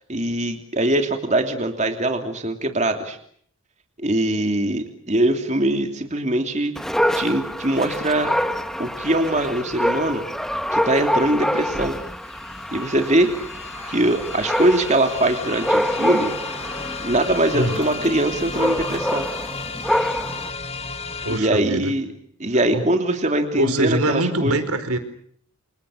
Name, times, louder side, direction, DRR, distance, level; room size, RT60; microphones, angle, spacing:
voice 1, 0.1-3.2 4.0-6.7 7.1-8.3 8.8-10.2 10.7-12.0 12.7-13.3 13.9-16.3 17.0-19.3 21.3-22.0 22.4-24.6, right 1 dB, 30° right, 5 dB, 3.0 m, -22 dB
Dog, 6.8-20.5, equal, ahead, 1.5 m, -26 dB
sound 1, 11.7-21.4, left 4 dB, 30° left, 3.5 m, -34 dB
voice 2, 21.2-21.9 22.7-22.9 23.6-25.0, right 1 dB, 85° right, 11 dB, 4.7 m, -23 dB
30.0 x 27.5 x 6.4 m, 0.64 s
head